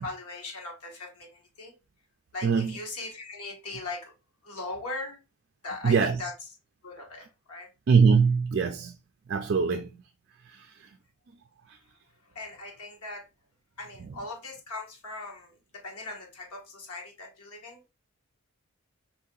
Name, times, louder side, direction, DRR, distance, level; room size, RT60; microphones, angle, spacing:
voice 1, 0.0-1.7 2.3-4.1 4.4-5.2 5.6-6.5 6.8-7.7 12.2-13.3 13.8-17.9, left 3 dB, 90° left, 1.3 m, -39 dB
voice 2, 2.4-2.7 5.8-6.2 7.9-8.9 9.3-9.9, right 5 dB, 50° right, 0.3 m, -22 dB
4.4 x 2.8 x 3.8 m
head